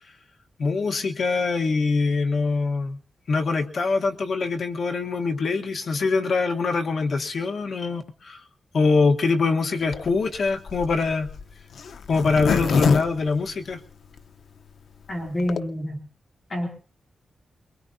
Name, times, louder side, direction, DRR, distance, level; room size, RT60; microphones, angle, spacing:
voice 1, 0.6-3.0 3.3-8.4 8.7-11.3 12.1-13.8, left 4 dB, 55° left, 5 dB, 1.2 m, -23 dB
Zipper (clothing), 9.9-14.2 14.7-14.8 14.9-15.0 15.3-15.6, left 5 dB, 80° left, 0.8 m, -26 dB
voice 2, 15.1-16.0 16.5-16.7, left 1 dB, 40° left, 1 dB, 3.0 m, -27 dB
22.5 x 22.0 x 2.7 m, 0.40 s
wide cardioid pair, 140°, 0 cm